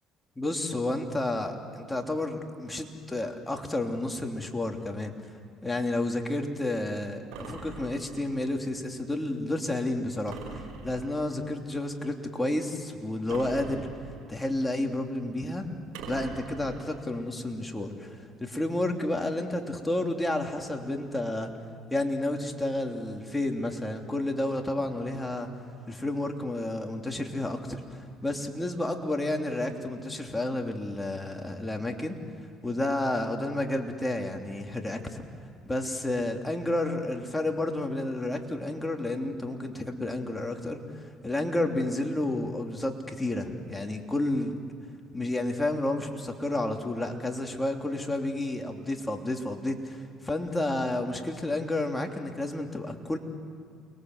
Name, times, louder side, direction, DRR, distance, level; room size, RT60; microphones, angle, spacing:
voice 1, 0.4-5.1 5.6-13.9 14.3-15.7 16.1-21.5 21.9-25.5 25.9-32.1 32.6-35.2 35.6-44.6 45.1-53.2, left 1 dB, 10° left, 2 dB, 3.1 m, -31 dB
sound 1, 7.3-8.4 10.3-11.3 13.3-14.4 15.9-17.0, right 5 dB, 85° right, 5.2 m, -42 dB
29.0 x 22.5 x 8.0 m, 2.5 s
supercardioid pair, 85°, 0 cm